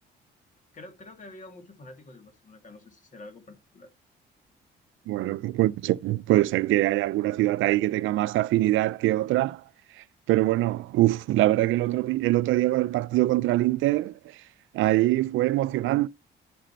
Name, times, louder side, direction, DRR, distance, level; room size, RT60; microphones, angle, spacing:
voice 1, 0.7-3.9, left 2 dB, 40° left, 2.3 m, -47 dB
voice 2, 5.1-9.6 10.3-14.2 14.7-16.1, right 16 dB, 85° right, 0.4 m, -23 dB
11.5 x 5.0 x 4.4 m
cardioid pair, 90°, 20 cm